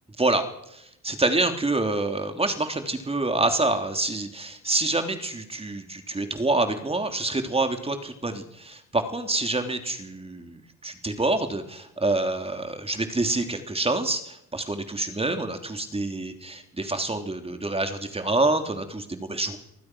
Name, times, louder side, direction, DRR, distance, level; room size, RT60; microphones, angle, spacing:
voice 1, 0.7-19.6, right 2 dB, 20° right, 6 dB, 3.2 m, -27 dB
27.5 x 19.5 x 6.3 m, 0.81 s
cardioid pair, 90°, 30 cm